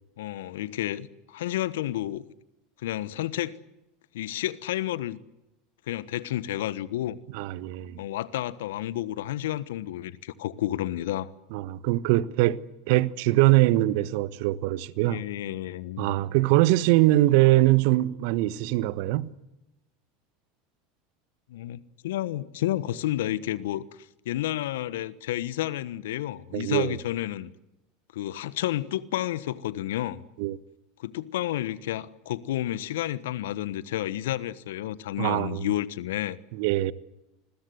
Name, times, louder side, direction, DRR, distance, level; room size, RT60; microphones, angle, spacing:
voice 1, 0.2-2.2 2.8-3.6 4.1-5.2 5.9-7.2 8.0-11.3 15.1-16.3 21.5-23.8 24.2-27.5 28.1-30.2 31.0-36.4, left 13 dB, 70° left, 1.2 m, -31 dB
voice 2, 7.3-8.0 11.5-12.6 12.9-15.2 16.0-19.3 26.5-27.0 30.4-30.6 35.2-35.7 36.5-36.9, right 17 dB, 60° right, 1.2 m, -22 dB
28.0 x 21.5 x 8.0 m
hypercardioid pair, 80°, 0 cm